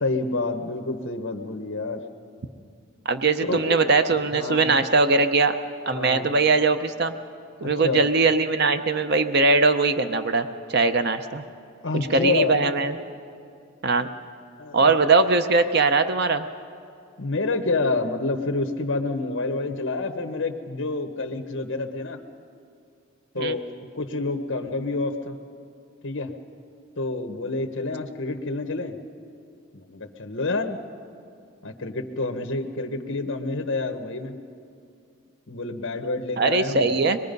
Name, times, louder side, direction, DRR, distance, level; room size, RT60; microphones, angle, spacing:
voice 1, 0.0-2.0 3.5-3.6 4.3-4.7 5.9-6.3 7.6-8.0 11.8-12.6 14.6-14.9 17.2-22.2 23.3-23.7 24.0-25.4 26.0-26.3 27.0-28.9 29.7-30.8 31.6-34.4 35.5-36.9, left 3 dB, 60° left, 5 dB, 1.1 m, -28 dB
voice 2, 3.1-5.6 5.9-7.1 7.6-11.4 12.1-13.0 13.8-14.1 14.7-16.5 23.4-23.6 36.4-37.2, right 3 dB, 50° right, 9 dB, 0.6 m, -21 dB
24.0 x 21.5 x 5.3 m, 2.4 s
head